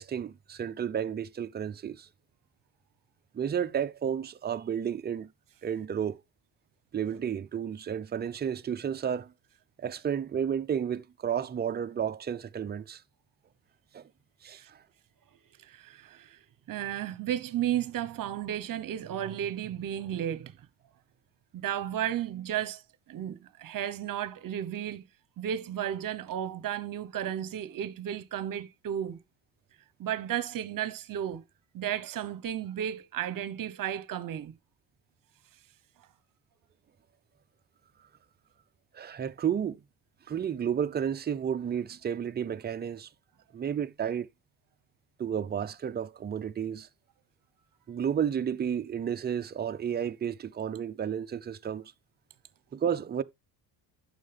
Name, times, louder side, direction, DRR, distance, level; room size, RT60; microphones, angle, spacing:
voice 1, 0.0-2.1 3.3-5.3 5.6-6.2 6.9-9.3 9.8-13.0 13.9-14.1 14.4-14.8 38.9-39.8 40.3-43.1 43.5-44.3 45.2-46.9 47.9-51.9 52.7-53.2, right 8 dB, 25° right, 0.5 m, -32 dB
voice 2, 15.7-16.4 16.7-20.5 21.5-22.8 23.1-25.1 25.4-29.2 30.0-31.4 31.7-34.5, right 10 dB, 50° right, 1.0 m, -33 dB
9.3 x 6.5 x 3.4 m
cardioid pair, 110°, 43 cm